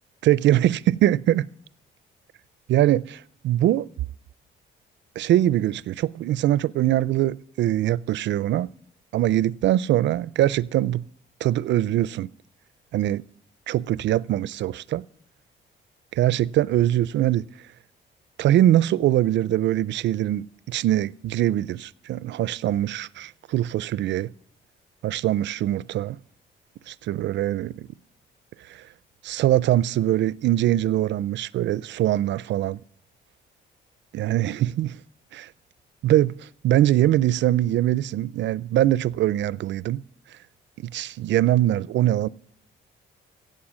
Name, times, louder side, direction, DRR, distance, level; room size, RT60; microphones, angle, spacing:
voice 1, 0.2-1.5 2.7-3.9 5.2-8.7 9.1-11.1 11.4-12.3 12.9-13.2 13.7-15.0 16.1-17.5 18.4-24.3 25.0-26.2 26.9-27.9 28.7-28.8 29.2-32.8 34.1-35.0 35.3-35.5 36.0-40.0 40.8-42.3, right 13 dB, 65° right, 0.4 m, -22 dB
16.0 x 7.7 x 6.2 m
cardioid pair, 90°, 20 cm